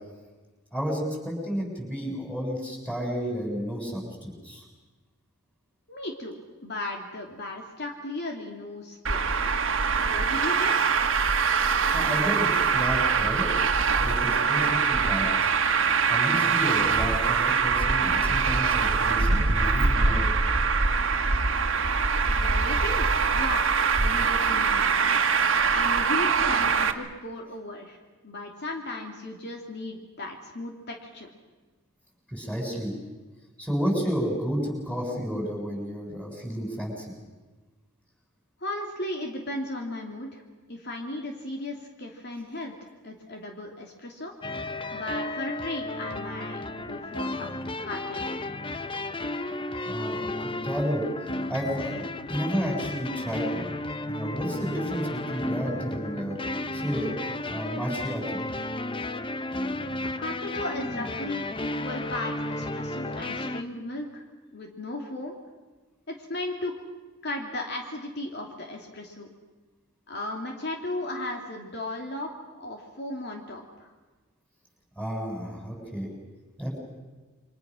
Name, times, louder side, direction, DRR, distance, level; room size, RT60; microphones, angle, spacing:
voice 1, 0.7-4.6 11.6-13.5 14.0-15.5 16.1-20.3 32.3-33.0 33.6-37.1 49.9-50.3 50.6-51.0 51.5-53.8 54.1-56.4 56.7-58.4 75.0-76.1 76.6-76.8, equal, 5° left, 0 dB, 7.2 m, -31 dB
voice 2, 5.9-10.7 22.2-24.9 25.7-28.0 28.2-31.3 38.6-40.4 40.7-42.7 43.0-44.3 44.6-47.5 47.8-48.3 60.0-64.2 64.5-65.4 66.1-66.8 67.2-69.3 70.1-72.3 72.6-73.9, left 1 dB, 55° left, 1 dB, 2.8 m, -36 dB
Traffic noise roadway noise, 9.1-26.9, right 5 dB, 70° right, 1.7 m, -23 dB
sound 1, 44.4-63.6, left 2 dB, 25° left, 0.9 m, -33 dB
29.0 x 25.0 x 6.3 m, 1.3 s
head